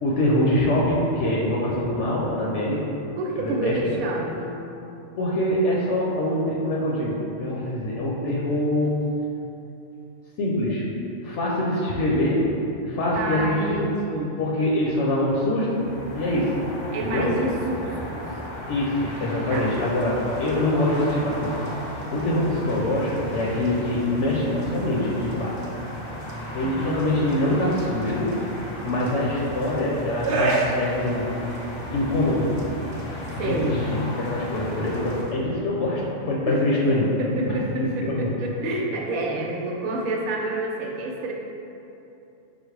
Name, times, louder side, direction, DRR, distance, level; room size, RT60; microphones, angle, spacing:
voice 1, 0.0-2.8 3.4-3.8 5.2-9.0 10.4-10.8 11.2-12.5 12.8-13.8 14.4-15.9 16.1-16.6 17.0-17.3 18.7-21.5 22.1-25.6 26.5-28.3 28.8-31.3 31.9-32.5 33.3-37.1 37.4-38.3, left 1 dB, 65° left, -4 dB, 0.9 m, -24 dB
voice 2, 3.1-4.7 13.1-14.4 16.9-18.4 19.5-19.7 26.6-27.0 33.2-33.9 36.5-36.6 37.2-41.3, right 2 dB, 85° right, -1 dB, 1.0 m, -28 dB
sound 1, 15.5-35.2, left 1 dB, 50° left, 0.3 m, -35 dB
sound 2, 19.5-35.3, right 3 dB, 60° right, 0.5 m, -36 dB
5.1 x 2.1 x 4.5 m, 2.9 s
omnidirectional pair, 1.4 m